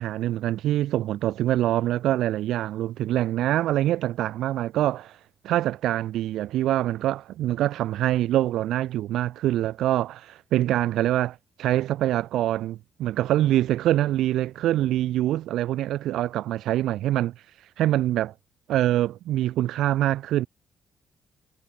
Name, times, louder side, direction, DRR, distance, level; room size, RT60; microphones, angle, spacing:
voice 1, 0.0-5.2 5.4-17.3 17.8-18.3 18.7-20.5, right 13 dB, 85° right, 7.7 m, -24 dB
cardioid pair, 85°, 0 cm